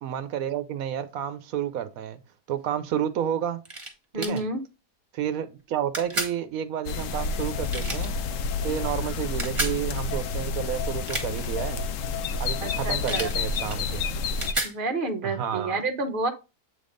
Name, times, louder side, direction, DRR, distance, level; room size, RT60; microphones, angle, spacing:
voice 1, 0.0-2.2 2.5-3.6 4.2-4.4 5.1-8.1 8.6-11.9 12.4-14.0 15.2-15.8, right 9 dB, 70° right, 1.0 m, -30 dB
sound 1, 3.7-3.9 4.2-4.4 5.9-6.4 7.7-8.1 9.4-9.8 10.9-11.5 13.1-13.4 13.7-14.8, right 2 dB, 20° right, 1.2 m, -31 dB
voice 2, 4.1-4.6 12.6-13.3 14.6-16.3, right 2 dB, 45° right, 0.8 m, -29 dB
sound 2, 6.9-14.5, left 4 dB, 65° left, 0.9 m, -29 dB
8.0 x 3.5 x 3.8 m
omnidirectional pair, 1.7 m